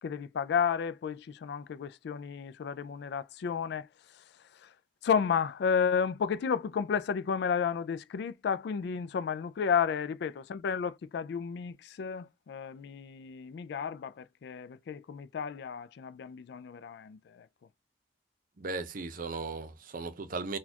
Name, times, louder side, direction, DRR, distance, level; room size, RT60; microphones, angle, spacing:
voice 1, 0.0-4.8 5.0-17.5, left 6 dB, 70° left, 0.3 m, -32 dB
voice 2, 18.6-20.6, right 3 dB, 50° right, 0.6 m, -36 dB
4.1 x 2.3 x 2.8 m
head